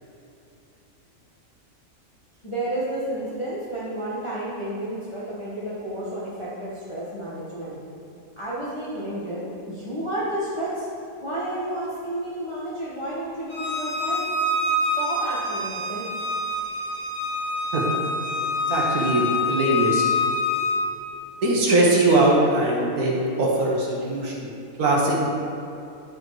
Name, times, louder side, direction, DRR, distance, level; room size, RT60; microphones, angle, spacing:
voice 1, 2.4-7.8 8.4-10.9 11.2-14.3 14.8-16.1, right 1 dB, 20° left, -9 dB, 1.2 m, -31 dB
Bowed string instrument, 13.5-20.7, left 2 dB, 70° left, 1.9 m, -26 dB
voice 2, 18.7-20.0 21.4-24.5 24.8-25.3, right 2 dB, 80° right, -3 dB, 1.6 m, -21 dB
10.5 x 4.3 x 4.8 m, 2.8 s
omnidirectional pair, 1.6 m